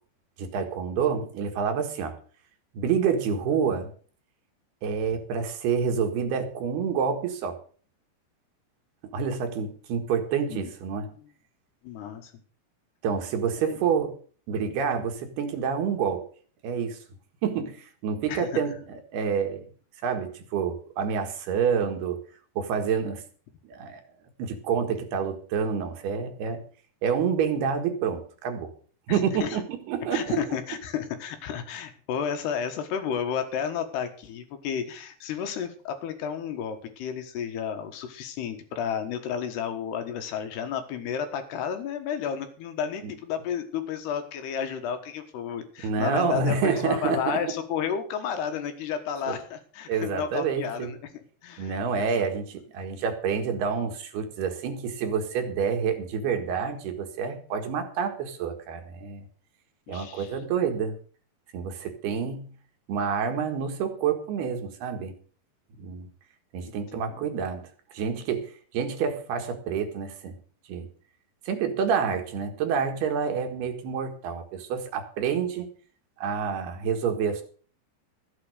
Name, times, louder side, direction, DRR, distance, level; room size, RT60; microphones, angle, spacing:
voice 1, 0.4-2.2 2.7-3.9 4.8-7.6 9.1-11.1 13.0-14.1 14.5-16.3 16.6-17.0 17.4-19.7 20.0-22.2 22.6-23.2 23.6-24.0 24.4-26.6 27.0-28.7 29.1-30.4 43.0-43.1 45.8-47.4 49.3-49.4 49.9-50.9 51.6-59.2 59.9-61.0 61.5-62.5 62.9-65.1 65.8-66.1 66.5-67.7 67.9-70.4 70.7-70.9 71.5-75.7 76.2-77.4, right 6 dB, 70° right, 6 dB, 3.5 m, -28 dB
voice 2, 11.8-12.3 13.7-13.8 18.3-18.5 29.1-29.6 30.1-51.8 59.9-60.4 66.7-67.2, left 7 dB, 75° left, 7 dB, 3.4 m, -32 dB
13.5 x 8.6 x 6.6 m, 0.43 s
omnidirectional pair, 4.9 m